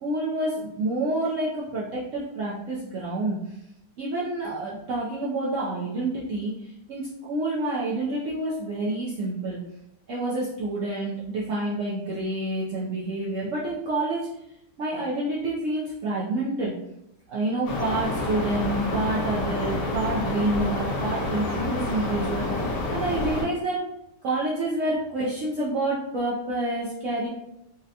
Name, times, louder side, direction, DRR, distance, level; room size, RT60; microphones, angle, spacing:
voice 1, 0.0-3.4 4.0-9.6 10.1-14.3 14.8-16.7 17.3-23.8 24.2-27.3, right 2 dB, 80° right, -7 dB, 0.7 m, -28 dB
sound 1, 17.7-23.5, left 2 dB, 70° left, 1.3 m, -28 dB
3.8 x 2.1 x 2.7 m, 0.81 s
omnidirectional pair, 2.0 m